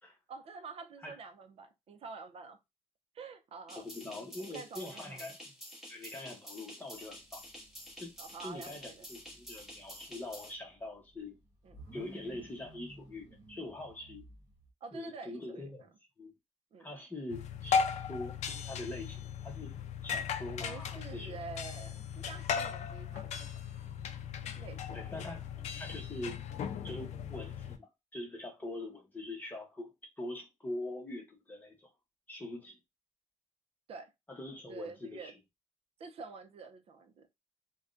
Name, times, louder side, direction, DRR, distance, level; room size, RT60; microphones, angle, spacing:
voice 1, 0.3-2.6 3.1-3.9 4.4-5.3 8.2-9.1 11.6-11.8 14.8-15.9 16.7-16.9 20.6-23.5 24.4-25.1 33.9-34.1 34.7-35.3 36.0-37.3, right 4 dB, 60° right, 0.5 m, -47 dB
voice 2, 3.7-5.5 5.9-7.4 8.0-8.1 8.4-11.4 11.9-14.2 14.9-15.8 16.2-16.3 16.8-19.7 20.0-21.4 24.9-25.5 25.7-26.4 26.8-29.9 30.2-31.9 32.3-32.8 34.3-35.3, left 1 dB, 15° left, 0.9 m, -43 dB
sound 1, 3.7-10.5, left 1 dB, 5° right, 1.4 m, -50 dB
sound 2, 6.9-14.7, right 1 dB, 35° right, 1.4 m, -55 dB
sound 3, 17.3-27.8, left 6 dB, 80° left, 0.4 m, -37 dB
3.5 x 2.2 x 2.5 m
wide cardioid pair, 175°, 12 cm